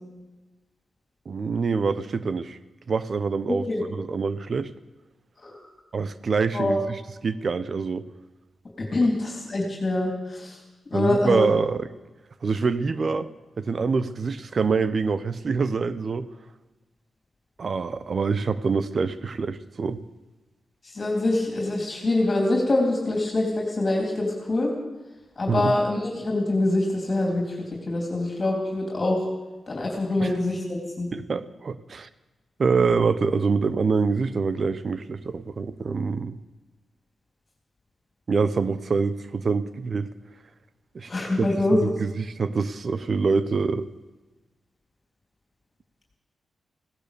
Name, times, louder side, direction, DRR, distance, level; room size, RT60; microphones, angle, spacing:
voice 1, 1.3-2.6 2.9-4.7 5.9-8.1 9.0-9.1 10.9-11.8 12.4-13.3 13.6-16.3 17.6-20.0 25.5-25.8 30.2-30.3 31.1-32.1 32.6-36.4 38.3-40.1 40.9-41.5 41.8-43.9, right 4 dB, 50° right, 14 dB, 0.9 m, -25 dB
voice 2, 8.8-10.6 10.9-11.5 20.9-24.7 25.4-27.6 27.9-29.2 29.7-31.1 41.1-41.8, left 2 dB, 35° left, -1 dB, 3.6 m, -24 dB
16.5 x 12.0 x 6.9 m, 1.2 s
cardioid pair, 90°, 0 cm